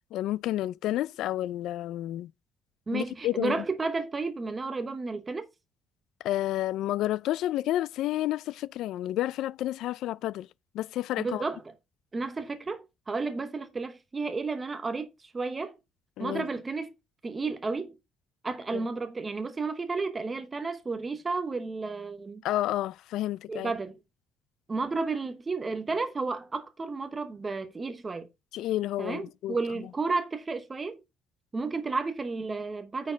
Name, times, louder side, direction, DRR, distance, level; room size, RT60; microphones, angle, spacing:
voice 1, 0.1-2.3 2.9-3.6 6.2-10.5 10.7-11.4 16.2-16.4 18.7-18.8 22.4-23.7 28.5-29.6, left 14 dB, 65° left, 0.3 m, -30 dB
voice 2, 2.9-5.5 11.2-11.6 12.1-15.7 16.2-16.9 17.2-17.9 18.4-22.4 23.5-24.0 24.7-28.3 29.0-31.0 31.5-33.1, right 3 dB, 15° right, 0.8 m, -32 dB
9.4 x 4.6 x 4.5 m
cardioid pair, 180°, 0 cm